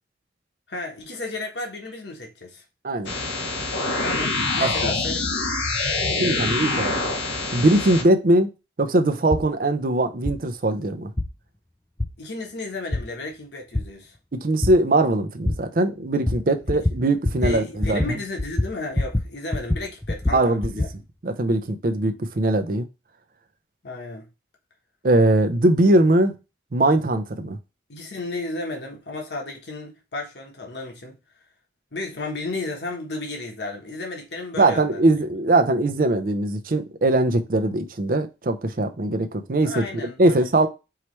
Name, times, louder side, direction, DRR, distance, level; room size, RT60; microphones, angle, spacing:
voice 1, 0.7-2.6 4.0-5.5 12.2-14.1 16.7-16.8 17.4-20.9 23.8-24.3 27.9-31.2 31.9-35.1 39.6-40.4, left 2 dB, 65° left, 1.1 m, -33 dB
sound 1, 3.1-8.0, left 3 dB, 90° left, 1.2 m, -25 dB
voice 2, 4.6-4.9 6.2-7.0 7.5-8.5 8.8-11.1 14.3-18.2 20.3-20.7 21.2-22.9 25.0-26.3 26.7-27.6 34.6-39.8 40.2-40.7, right 2 dB, 50° right, 0.5 m, -21 dB
sound 2, 9.3-9.5 10.3-10.4 11.2-11.3 12.0-12.1 12.9-13.0 13.7-13.9 14.6-14.7 15.5-15.6 16.3-16.4 16.7-17.0 17.3-17.5 17.8-18.1 18.4-19.3 19.5-20.9, left 1 dB, 10° left, 0.4 m, -23 dB
4.7 x 3.0 x 3.1 m
head